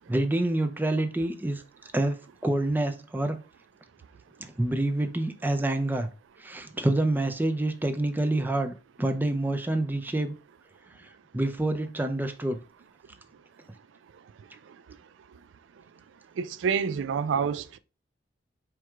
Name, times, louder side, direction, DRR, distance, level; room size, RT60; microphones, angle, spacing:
voice 1, 0.1-1.6 1.9-2.2 2.4-3.4 4.4-6.1 6.4-10.4 11.3-12.6, right 1 dB, 10° right, 0.4 m, -27 dB
voice 2, 16.4-17.8, right 6 dB, 85° right, 0.4 m, -27 dB
4.6 x 2.4 x 4.6 m
head